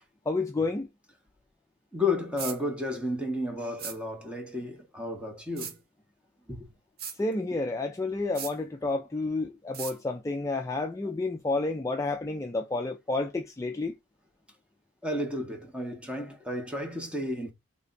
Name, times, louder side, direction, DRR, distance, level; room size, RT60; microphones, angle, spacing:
voice 1, 0.3-0.9 7.2-14.0, left 3 dB, 15° left, 0.3 m, -30 dB
voice 2, 1.9-5.8 6.5-6.7 12.9-13.0 15.0-17.5, left 2 dB, 5° right, 0.9 m, -32 dB
sound 1, 2.4-2.6 3.8-4.0 5.6-5.7 7.0-7.2 8.3-8.5 9.7-9.9, right 7 dB, 55° right, 0.7 m, -37 dB
3.4 x 2.3 x 3.8 m
head